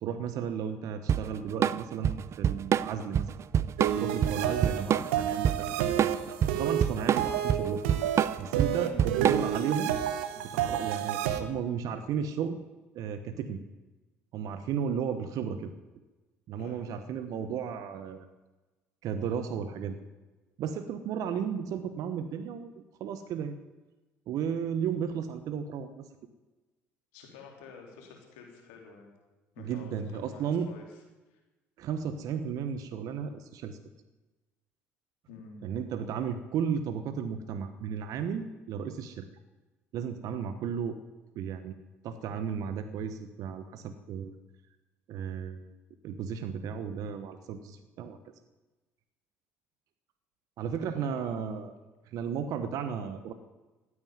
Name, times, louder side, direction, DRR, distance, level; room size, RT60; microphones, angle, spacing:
voice 1, 0.0-3.3 4.0-6.1 6.6-7.8 8.4-10.0 10.4-12.6 12.9-13.6 14.3-15.7 16.5-18.3 19.0-20.0 20.6-23.6 24.3-26.1 29.6-30.7 31.8-33.8 35.6-39.2 39.9-41.0 41.3-41.8 42.0-44.4 45.1-45.7 46.0-48.2 50.6-51.7 52.1-53.3, right 7 dB, 65° right, 10 dB, 1.1 m, -34 dB
Drum kit / Drum, 1.1-9.7, right 9 dB, 45° right, 0.5 m, -27 dB
sound 1, 3.8-11.4, right 10 dB, 80° right, 1.1 m, -30 dB
voice 2, 16.5-16.9 27.1-29.1 29.5-30.8 31.3-31.4 35.3-35.7 50.8-51.8, left 5 dB, 80° left, 1 dB, 3.6 m, -50 dB
15.0 x 9.7 x 9.3 m, 1.2 s
hypercardioid pair, 60°, 7 cm